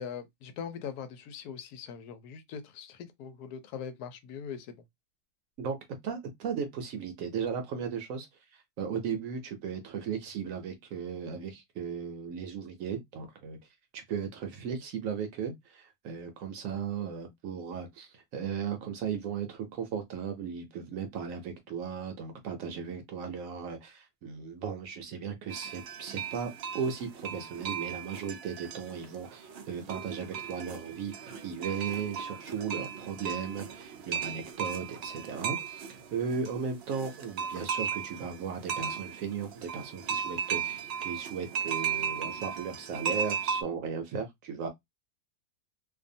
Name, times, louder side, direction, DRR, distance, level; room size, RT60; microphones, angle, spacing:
voice 1, 0.0-4.7, left 7 dB, 85° left, 1.1 m, -41 dB
voice 2, 6.0-13.6 13.9-44.7, right 6 dB, 70° right, 0.9 m, -36 dB
sound 1, 25.5-43.6, right 7 dB, 85° right, 0.5 m, -36 dB
2.6 x 2.2 x 2.6 m
omnidirectional pair, 1.6 m